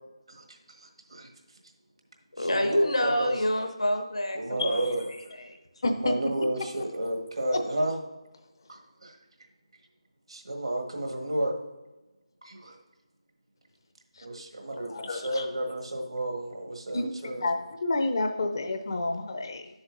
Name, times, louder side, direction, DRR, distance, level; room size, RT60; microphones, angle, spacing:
voice 1, 0.3-1.3 2.4-3.3 4.3-5.1 6.0-7.9 8.7-9.2 10.3-11.6 12.4-12.8 14.2-17.4, right 1 dB, 65° right, 3 dB, 1.4 m, -32 dB
voice 2, 2.4-4.9 5.3-5.6, left 1 dB, 75° left, 5 dB, 1.2 m, -27 dB
voice 3, 4.6-4.9 5.8-6.2 7.5-7.6 14.1-14.3 14.8-15.5 16.9-19.7, left 2 dB, 45° left, 7 dB, 0.7 m, -30 dB
10.5 x 7.2 x 2.5 m, 1.1 s
figure-of-eight pair, 155°, 3 cm